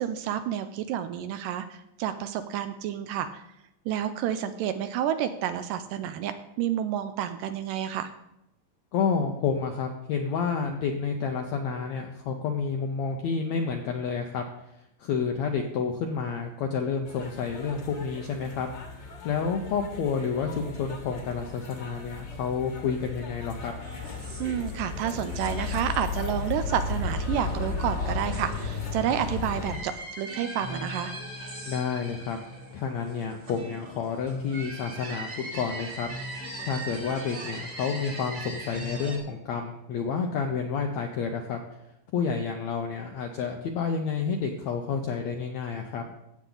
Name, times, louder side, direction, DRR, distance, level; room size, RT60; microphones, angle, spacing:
voice 1, 0.0-3.4 3.9-8.1 24.4-31.1, right 10 dB, 80° right, 10 dB, 2.0 m, -30 dB
voice 2, 8.9-14.4 15.0-18.7 19.2-23.7 31.7-32.4 32.7-35.3 35.5-36.1 36.6-41.6 42.1-46.0, left 6 dB, 80° left, 4 dB, 1.6 m, -29 dB
sound 1, 17.1-29.8, left 4 dB, 50° left, 1.4 m, -35 dB
sound 2, 23.8-39.2, right 1 dB, 30° right, 1.3 m, -40 dB
15.0 x 8.3 x 3.9 m, 0.85 s
omnidirectional pair, 4.2 m